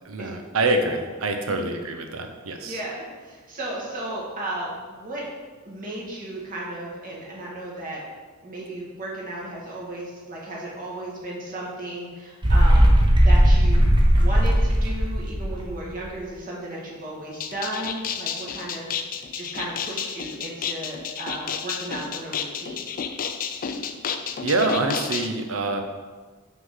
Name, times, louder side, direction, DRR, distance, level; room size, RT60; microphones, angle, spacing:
voice 1, 0.0-2.8 24.4-25.8, right 2 dB, 65° right, 5 dB, 0.7 m, -25 dB
voice 2, 2.6-5.3 5.6-8.0 8.4-13.8 14.1-22.8, right 1 dB, 40° right, -5 dB, 1.7 m, -34 dB
sound 1, 12.4-16.0, equal, 20° right, 0.8 m, -17 dB
sound 2, 17.3-25.3, left 7 dB, 40° left, 0.4 m, -31 dB
5.9 x 3.8 x 5.6 m, 1.4 s
head